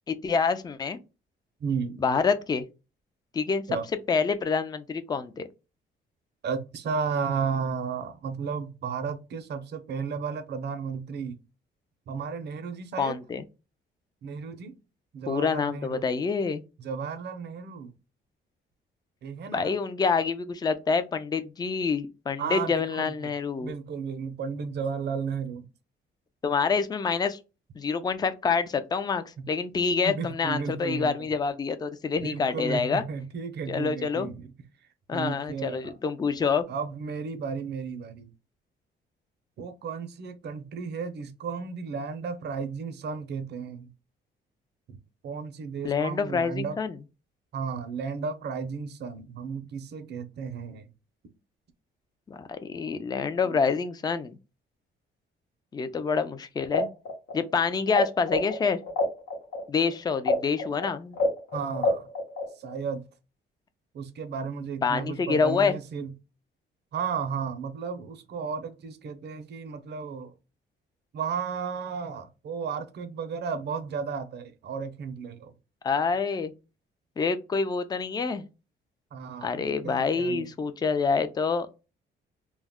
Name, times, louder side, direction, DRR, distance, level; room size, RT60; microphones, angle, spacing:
voice 1, 0.1-1.0 2.0-2.6 3.3-3.6 4.1-5.5 13.0-13.4 15.3-16.6 19.5-23.7 26.4-27.4 27.8-33.0 33.7-34.3 35.1-36.7 45.8-47.0 52.3-54.4 55.7-56.9 57.3-58.8 59.7-61.2 64.8-65.7 75.8-76.5 77.2-78.4 79.4-81.7, left 5 dB, 20° left, 0.3 m, -27 dB
voice 2, 1.6-2.0 3.7-3.9 6.4-11.4 12.1-13.2 14.2-14.7 15.1-16.0 16.8-17.9 19.2-19.7 22.4-23.1 23.6-25.7 29.4-29.5 30.1-31.3 32.2-34.5 35.1-36.0 36.7-38.3 39.6-43.9 44.9-45.0 45.2-46.8 47.5-50.9 53.5-53.6 61.5-62.1 62.6-63.0 63.9-66.1 66.9-70.3 71.1-75.5 79.1-80.5, right 6 dB, 60° right, 0.6 m, -33 dB
sound 1, 56.6-58.0 58.3-62.8, left 3 dB, 90° left, 0.9 m, -27 dB
2.2 x 2.0 x 3.4 m
cardioid pair, 90°, 20 cm